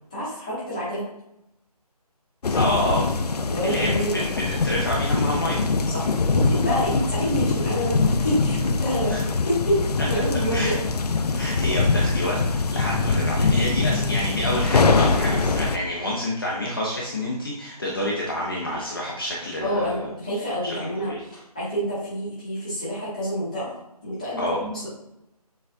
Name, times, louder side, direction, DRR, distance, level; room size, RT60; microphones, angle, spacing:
voice 1, 0.1-1.0 3.5-4.2 5.9-9.8 10.1-10.8 11.3-11.4 19.6-23.7 24.0-24.9, equal, 10° left, -10 dB, 0.9 m, -28 dB
sound 1, 2.4-15.8, left 4 dB, 75° left, 0.5 m, -23 dB
voice 2, 2.6-3.1 3.6-5.6 6.7-6.8 9.1-9.2 10.5-10.8 11.3-12.4 12.7-20.1 20.6-21.2 24.4-24.6, left 1 dB, 35° left, -5 dB, 0.6 m, -28 dB
6.7 x 2.4 x 2.5 m, 0.85 s
figure-of-eight pair, 175°, 20 cm